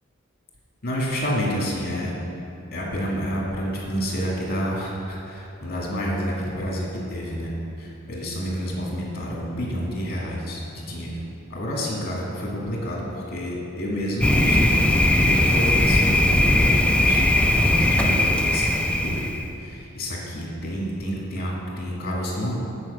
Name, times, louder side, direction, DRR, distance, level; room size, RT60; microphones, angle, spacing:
voice 1, 0.8-2.2 2.7-7.5 7.8-11.1 11.5-14.9 15.2-22.6, equal, 50° left, -3 dB, 2.0 m, -29 dB
Thunder, 14.2-19.5, left 1 dB, 5° left, 0.4 m, -19 dB
9.5 x 4.8 x 6.6 m, 2.9 s
head